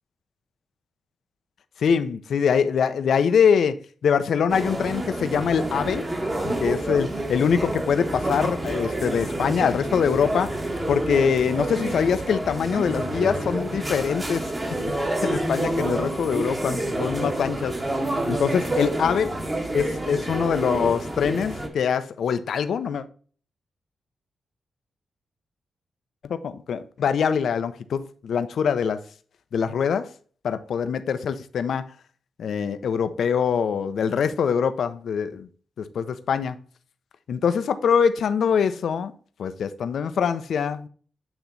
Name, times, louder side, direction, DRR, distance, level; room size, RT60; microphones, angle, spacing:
voice 1, 1.8-6.0 6.4-10.6 10.9-17.8 18.3-19.3 19.7-23.0 26.2-29.0 29.5-30.1 30.4-31.9 32.4-35.5 35.8-36.6 37.3-39.1 39.4-40.9, left 7 dB, 75° left, 0.5 m, -24 dB
sound 1, 4.5-21.7, right 1 dB, 25° right, 1.3 m, -28 dB
8.7 x 3.0 x 3.9 m
cardioid pair, 90°, 0 cm